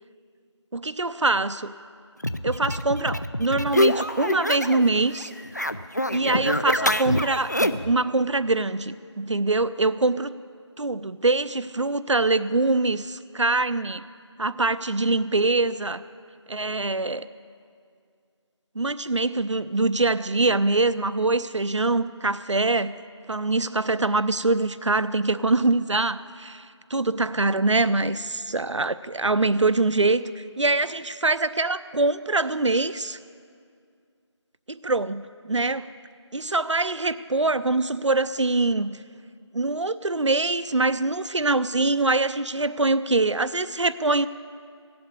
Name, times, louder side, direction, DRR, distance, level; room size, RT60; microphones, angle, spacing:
voice 1, 0.7-1.7 2.4-5.3 6.1-10.3 10.8-14.1 14.4-16.0 16.5-17.3 18.7-22.9 23.3-26.5 26.9-33.2 34.7-35.9 36.3-39.0 39.5-44.3, right 2 dB, 75° right, 14 dB, 0.6 m, -24 dB
sound 1, 2.2-4.9 5.1-7.9, left 1 dB, 35° left, 0.4 m, -25 dB
16.5 x 7.7 x 8.5 m, 2.2 s
figure-of-eight pair, 170°, 15 cm